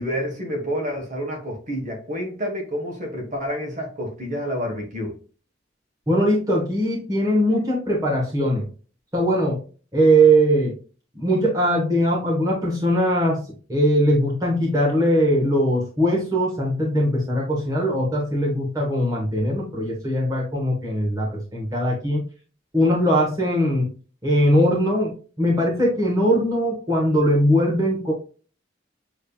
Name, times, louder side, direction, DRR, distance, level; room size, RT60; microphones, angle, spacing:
voice 1, 0.0-5.2, equal, 40° right, 1.3 m, -29 dB
voice 2, 6.1-8.7 9.1-9.6 9.9-10.7 11.1-13.4 13.7-22.2 22.7-23.9 24.2-28.1, equal, 20° right, 1.1 m, -20 dB
6.9 x 3.1 x 2.3 m
head